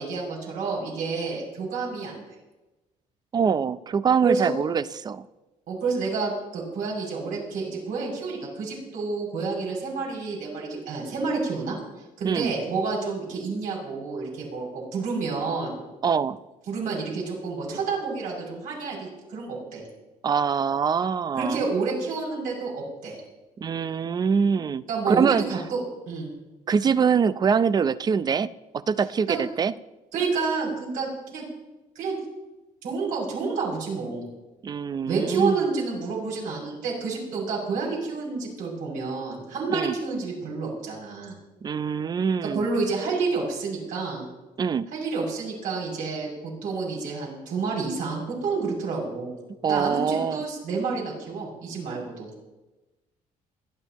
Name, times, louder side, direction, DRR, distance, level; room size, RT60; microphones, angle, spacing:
voice 1, 0.0-2.2 4.2-4.5 5.7-11.8 12.2-15.8 16.7-19.8 21.4-23.2 24.9-26.3 29.3-29.4 30.1-31.4 31.9-32.2 32.8-34.2 35.1-41.3 42.4-44.3 44.9-46.3 46.6-49.3 49.6-52.3, right 4 dB, 75° right, -3 dB, 6.8 m, -29 dB
voice 2, 3.3-5.3 12.2-12.5 16.0-16.4 20.2-21.6 23.6-25.5 26.7-28.5 28.7-29.7 34.6-35.6 39.7-39.9 41.6-42.7 44.6-44.9 49.6-50.4, right 6 dB, 30° right, 15 dB, 0.5 m, -24 dB
29.0 x 11.0 x 3.0 m, 1.1 s
cardioid pair, 140°, 14 cm